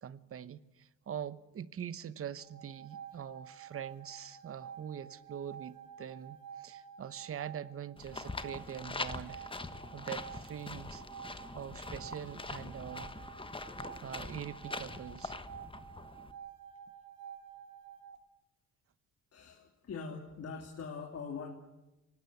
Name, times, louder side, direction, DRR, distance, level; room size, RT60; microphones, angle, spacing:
voice 1, 0.0-9.6 9.9-11.0 11.5-13.1 13.8-15.4, right 9 dB, 50° right, 1.0 m, -43 dB
sound 1, 2.4-18.2, right 8 dB, 85° right, 1.9 m, -50 dB
sound 2, 8.0-16.3, left 3 dB, 15° left, 1.3 m, -43 dB
voice 2, 19.3-21.5, left 5 dB, 55° left, 3.0 m, -42 dB
25.0 x 19.0 x 8.1 m
cardioid pair, 90°, 30 cm